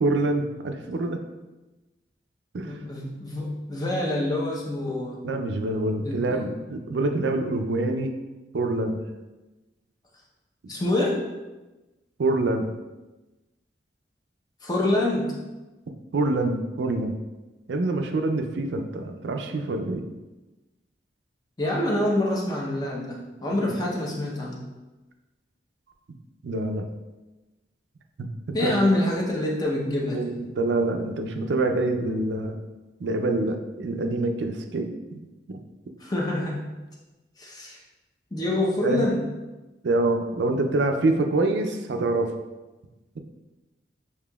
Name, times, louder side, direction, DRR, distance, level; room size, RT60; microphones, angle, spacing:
voice 1, 0.0-1.2 2.5-2.8 5.2-8.1 8.5-9.0 12.2-12.7 16.1-17.1 17.7-20.0 23.6-23.8 26.4-26.9 28.2-28.7 30.1-32.6 33.0-34.9 35.5-35.6 38.8-39.1 39.8-42.3, right 2 dB, 75° right, 5 dB, 0.4 m, -26 dB
voice 2, 2.6-5.2 6.0-6.5 10.7-11.2 14.6-15.4 21.6-24.6 28.5-30.3 36.0-36.6 37.4-37.8 38.3-39.2, left 1 dB, 20° left, -2 dB, 0.6 m, -26 dB
6.7 x 2.8 x 2.3 m, 1.1 s
head